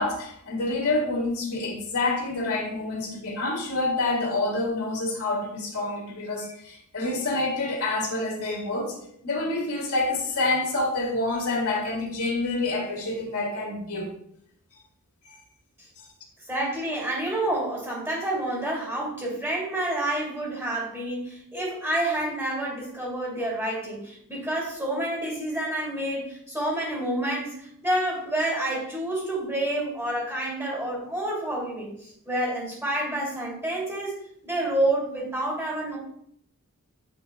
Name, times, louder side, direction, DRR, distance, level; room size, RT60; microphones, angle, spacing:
voice 1, 0.0-9.0 9.2-14.1 15.3-15.4 16.0-16.1, left 2 dB, 80° left, -2 dB, 2.3 m, -27 dB
voice 2, 16.4-36.0, right 1 dB, 10° right, -3 dB, 2.7 m, -29 dB
8.6 x 5.2 x 2.3 m, 0.70 s
head